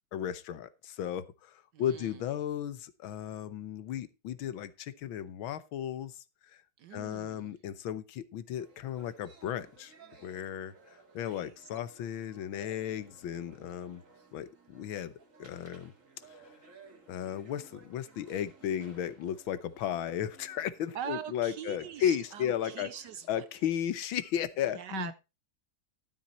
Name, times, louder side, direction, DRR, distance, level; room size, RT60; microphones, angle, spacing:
voice 1, 0.1-6.2 6.9-9.9 10.2-10.7 11.1-14.0 14.3-15.1 15.4-15.9 17.1-22.9 23.3-25.1, left 10 dB, 75° left, 14 dB, 1.6 m, -35 dB
voice 2, 1.7-2.2 6.8-7.5 11.2-11.5 20.9-23.4 24.7-25.1, right 9 dB, 70° right, 14 dB, 1.1 m, -42 dB
sound 1, 8.6-23.8, right 4 dB, 40° right, 2.3 m, -58 dB
12.5 x 7.3 x 4.2 m, 0.27 s
omnidirectional pair, 2.3 m